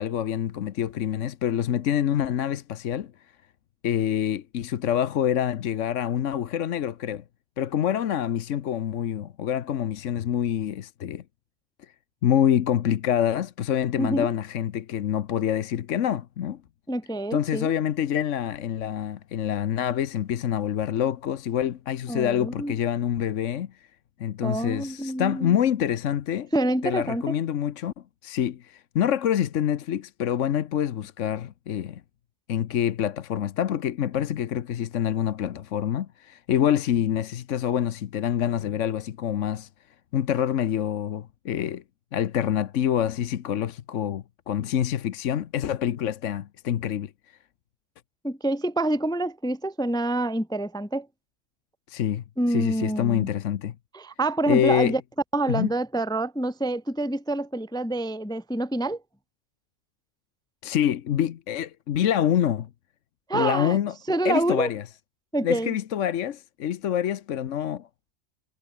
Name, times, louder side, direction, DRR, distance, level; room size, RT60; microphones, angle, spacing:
voice 1, 0.0-3.1 3.8-7.2 7.6-11.2 12.2-16.6 17.3-23.7 24.2-26.5 26.8-32.0 32.5-39.7 40.1-41.8 42.1-47.1 51.9-53.7 54.5-55.0 55.5-55.7 60.6-62.7 63.3-63.9 64.2-64.8 65.4-67.9, left 10 dB, 75° left, 1.1 m, -26 dB
voice 2, 14.0-14.3 16.9-17.7 22.1-22.7 24.4-25.6 26.5-27.4 48.2-51.1 52.4-53.3 53.9-55.0 55.3-59.0 63.3-63.8 64.1-64.7 65.3-65.7, right 2 dB, 5° left, 0.3 m, -27 dB
omnidirectional pair, 1.3 m